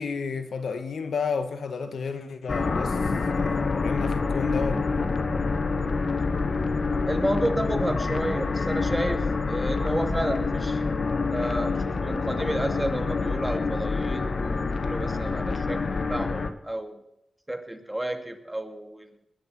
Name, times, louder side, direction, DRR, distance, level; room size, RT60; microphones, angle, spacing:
voice 1, 0.0-3.0 3.3-5.1, left 5 dB, 80° left, 1.6 m, -32 dB
sound 1, 2.5-16.5, left 4 dB, 55° left, 1.5 m, -27 dB
voice 2, 7.0-10.8 11.1-17.0 17.5-19.3, right 1 dB, 10° right, 2.4 m, -31 dB
20.0 x 11.5 x 6.1 m
cardioid pair, 75°, 0 cm